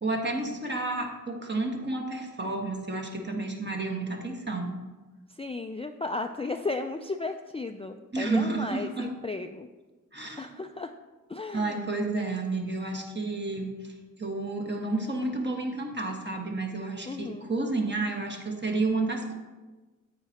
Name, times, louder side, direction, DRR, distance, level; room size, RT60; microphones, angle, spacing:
voice 1, 0.0-4.9 8.1-9.1 10.1-10.6 11.5-19.3, right 2 dB, 35° right, 1 dB, 1.3 m, -31 dB
voice 2, 5.3-9.7 10.4-10.9 11.3-11.8 17.1-17.5, left 3 dB, 20° left, 5 dB, 0.3 m, -34 dB
9.6 x 8.4 x 2.8 m, 1.2 s
wide cardioid pair, 75°, 33 cm